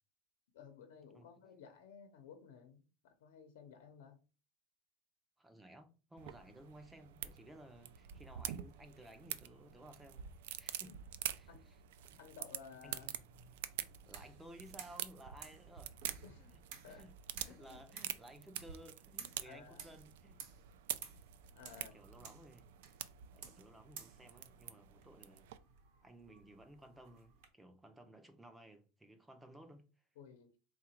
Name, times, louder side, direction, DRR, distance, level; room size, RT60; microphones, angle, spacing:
voice 1, 0.5-4.2 10.8-11.0 11.5-11.7 12.2-13.1 16.2-16.5 16.8-17.1 17.5-17.8 19.4-19.9 21.5-21.9 30.2-30.5, left 6 dB, 90° left, 0.9 m, -56 dB
voice 2, 1.1-1.4 5.4-11.0 11.3-11.8 12.1-12.2 12.8-13.1 14.0-16.0 16.4-16.6 16.9-20.4 21.7-22.7 23.3-25.5 26.0-29.9, right 1 dB, 5° right, 0.5 m, -57 dB
sound 1, 6.2-25.6, right 11 dB, 80° right, 0.4 m, -47 dB
sound 2, 12.8-27.5, right 7 dB, 55° right, 0.9 m, -56 dB
3.8 x 2.4 x 4.4 m
supercardioid pair, 175°, 0 cm